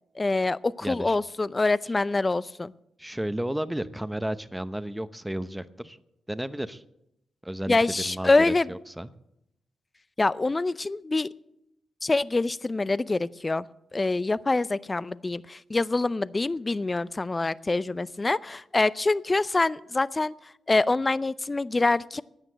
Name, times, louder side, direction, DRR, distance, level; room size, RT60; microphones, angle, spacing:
voice 1, 0.2-2.7 7.7-8.7 10.2-11.3 12.0-13.7 13.9-20.3 20.7-22.2, left 3 dB, 30° left, 18 dB, 0.5 m, -25 dB
voice 2, 0.8-1.2 3.0-6.0 6.3-6.8 7.4-9.1, right 1 dB, 10° right, 13 dB, 0.9 m, -33 dB
13.0 x 9.1 x 7.6 m, 0.82 s
supercardioid pair, 45°, 0 cm